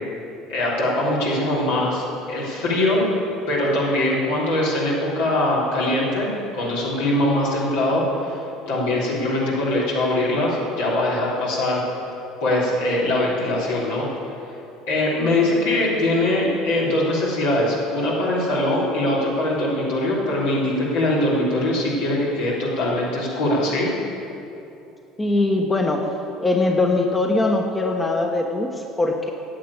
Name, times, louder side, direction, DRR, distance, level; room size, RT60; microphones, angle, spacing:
voice 1, 0.5-3.1 3.5-11.8 12.4-14.1 14.9-23.9, left 1 dB, 75° left, -6 dB, 3.5 m, -22 dB
voice 2, 25.2-26.1 26.4-29.3, left 2 dB, 20° left, 3 dB, 1.1 m, -21 dB
10.0 x 7.8 x 8.5 m, 2.8 s
hypercardioid pair, 75°, 0 cm